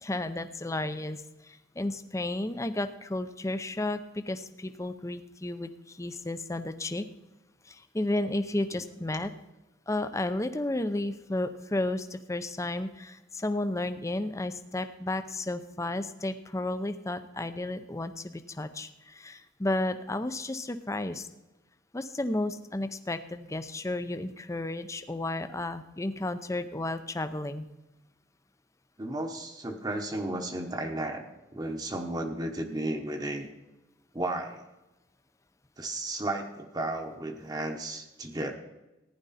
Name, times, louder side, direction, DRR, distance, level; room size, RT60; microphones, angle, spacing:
voice 1, 0.0-1.2 1.5-7.1 7.7-9.3 9.9-21.3 21.9-27.7, left 2 dB, 15° left, 10 dB, 0.6 m, -32 dB
voice 2, 29.0-33.5 34.1-34.6 35.8-38.5, right 1 dB, 20° right, 4 dB, 1.0 m, -34 dB
15.0 x 10.5 x 4.2 m, 1.0 s
head